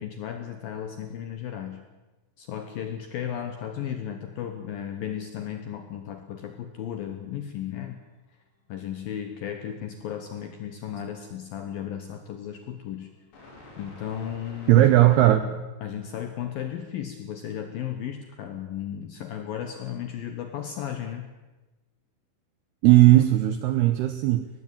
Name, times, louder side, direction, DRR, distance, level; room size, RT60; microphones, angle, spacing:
voice 1, 0.0-1.9 2.4-8.0 8.7-13.1 13.8-14.9 15.4-15.5 15.8-21.3, left 9 dB, 75° left, 7 dB, 2.2 m, -35 dB
sound 1, 8.6-9.5 9.7-15.2, left 2 dB, 50° left, 5.7 m, -52 dB
voice 2, 14.7-15.5 22.8-24.5, right 15 dB, 80° right, 9 dB, 2.3 m, -17 dB
19.5 x 15.5 x 8.9 m, 1.1 s
omnidirectional pair, 5.6 m